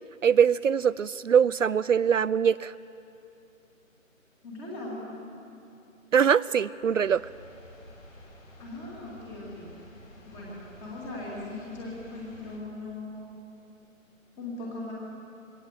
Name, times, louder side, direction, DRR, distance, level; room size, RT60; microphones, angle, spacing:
voice 1, 0.2-2.7 6.1-7.2, right 7 dB, 65° right, 18 dB, 0.5 m, -22 dB
voice 2, 4.4-5.0 8.6-9.7 10.2-13.3 14.4-14.9, left 2 dB, 10° left, -4 dB, 2.1 m, -39 dB
sound 1, 7.0-12.6, equal, 70° left, 7.0 m, -51 dB
22.0 x 17.5 x 8.0 m, 2.8 s
figure-of-eight pair, 170°, 41 cm